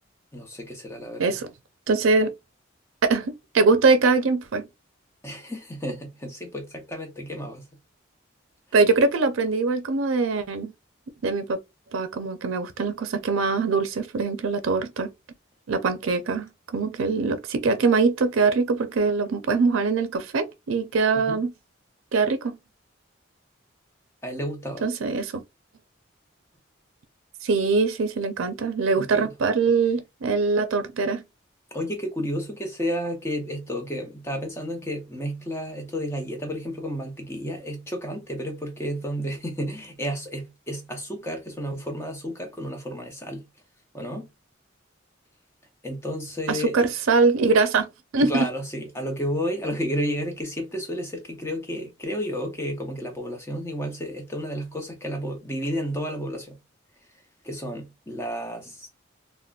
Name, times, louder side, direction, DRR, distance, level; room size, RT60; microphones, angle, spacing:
voice 1, 0.3-1.4 5.2-7.6 21.3-21.4 24.2-24.8 29.0-29.3 31.7-43.4 43.9-44.3 45.8-46.8 48.2-56.6 57.4-58.9, equal, 15° left, 0.7 m, -31 dB
voice 2, 1.9-2.3 3.1-4.7 8.7-10.7 11.2-11.6 11.9-15.1 15.7-21.5 22.1-22.6 24.8-25.4 27.4-31.2 46.5-48.5, right 4 dB, 85° right, 0.5 m, -23 dB
3.6 x 2.1 x 2.3 m
head